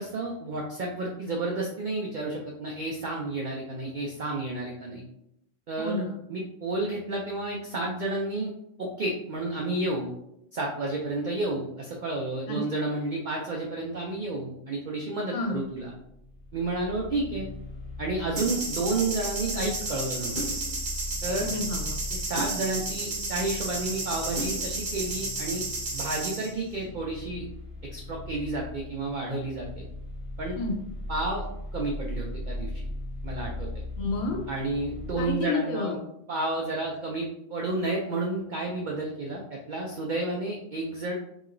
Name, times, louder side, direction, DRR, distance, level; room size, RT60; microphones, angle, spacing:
voice 1, 0.0-5.0 5.7-8.5 8.8-10.1 10.5-15.9 16.5-17.5 18.0-20.3 21.2-21.5 22.1-25.6 25.9-27.5 27.9-29.9 30.4-30.6 31.1-31.5 31.7-32.9 33.2-33.8 34.5-36.0 36.3-41.1, right 2 dB, 80° right, -2 dB, 0.4 m, -31 dB
voice 2, 5.8-6.2 12.5-12.8 15.3-15.6 21.4-22.0 30.6-30.8 34.0-34.4 35.2-36.0, left 3 dB, 75° left, 1 dB, 1.0 m, -30 dB
sound 1, 15.5-35.3, left 1 dB, 45° left, 1.0 m, -39 dB
sound 2, 18.4-26.5, right 2 dB, 45° right, 0.8 m, -32 dB
2.9 x 2.9 x 2.5 m, 0.80 s
omnidirectional pair, 1.4 m